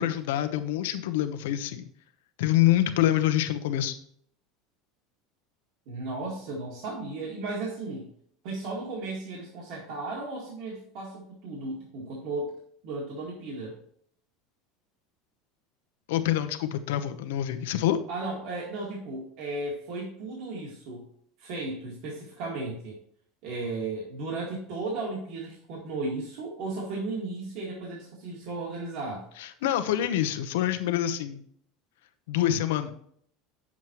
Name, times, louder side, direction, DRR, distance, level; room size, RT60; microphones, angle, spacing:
voice 1, 0.0-1.9 2.4-4.0 16.1-18.0 29.4-31.4 32.3-32.9, left 12 dB, 90° left, 9 dB, 0.9 m, -26 dB
voice 2, 5.9-8.1 8.4-12.6 12.8-13.8 18.1-21.1 21.4-23.0 23.4-29.3, right 2 dB, 50° right, -3 dB, 1.9 m, -35 dB
9.2 x 7.3 x 3.0 m, 0.64 s
cardioid pair, 180°, 0 cm